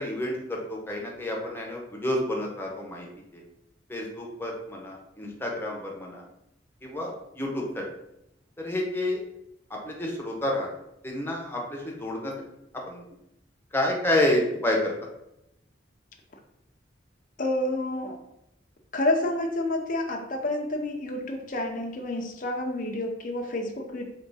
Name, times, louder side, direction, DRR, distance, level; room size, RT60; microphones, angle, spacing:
voice 1, 0.0-3.1 3.3-3.4 3.9-6.2 6.8-7.8 8.6-9.2 9.7-10.7 11.0-12.3 12.9-13.1 13.7-14.9, left 1 dB, 10° left, -1 dB, 0.9 m, -29 dB
voice 2, 17.4-18.2 18.9-24.0, left 1 dB, 45° left, 1 dB, 0.6 m, -29 dB
3.8 x 3.5 x 4.0 m, 0.83 s
head